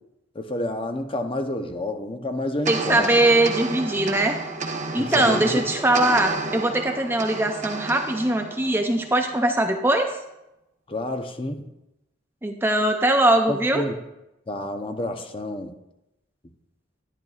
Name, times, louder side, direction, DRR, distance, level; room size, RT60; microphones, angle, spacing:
voice 1, 0.3-3.1 5.0-5.6 10.9-11.7 13.5-14.0 14.5-15.7, left 1 dB, 30° left, 6 dB, 0.7 m, -29 dB
voice 2, 2.7-4.4 4.9-10.1 12.4-13.8, right 1 dB, 10° right, 5 dB, 0.5 m, -21 dB
sound 1, 2.7-9.3, right 3 dB, 40° right, 0.9 m, -31 dB
11.0 x 10.5 x 2.4 m, 0.91 s
head